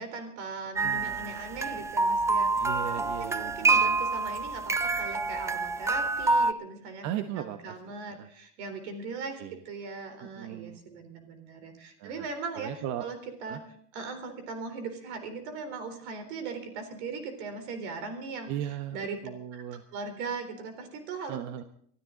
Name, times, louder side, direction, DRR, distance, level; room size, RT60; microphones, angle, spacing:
voice 1, 0.0-2.7 2.9-9.4 9.7-13.2 13.4-13.6 13.9-18.5 18.9-19.2 19.5-19.6 19.9-21.4, right 4 dB, 75° right, 8 dB, 3.9 m, -39 dB
sound 1, 0.8-6.5, right 3 dB, 10° right, 0.5 m, -27 dB
voice 2, 0.8-1.5 2.6-4.1 7.0-8.3 9.4-9.6 10.2-10.8 12.0-12.3 12.5-13.1 13.5-13.6 18.5-19.8 21.3-21.6, right 11 dB, 55° right, 9 dB, 1.0 m, -38 dB
24.5 x 12.5 x 3.9 m, 0.64 s
supercardioid pair, 110°, 34 cm